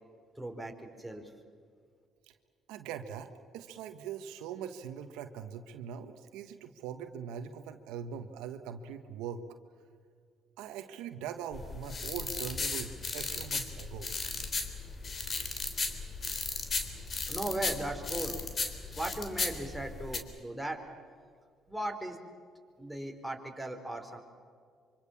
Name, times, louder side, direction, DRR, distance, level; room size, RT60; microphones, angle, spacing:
voice 1, 0.4-1.2 17.3-18.4 19.0-20.8 21.7-22.2 22.8-24.2, right 1 dB, ahead, 2 dB, 4.7 m, -37 dB
voice 2, 2.7-9.4 10.6-14.1, right 8 dB, 85° right, 7 dB, 1.4 m, -42 dB
sound 1, 11.5-20.2, left 4 dB, 40° left, 3.4 m, -36 dB
25.5 x 25.0 x 7.3 m, 2.2 s
supercardioid pair, 65°, 0 cm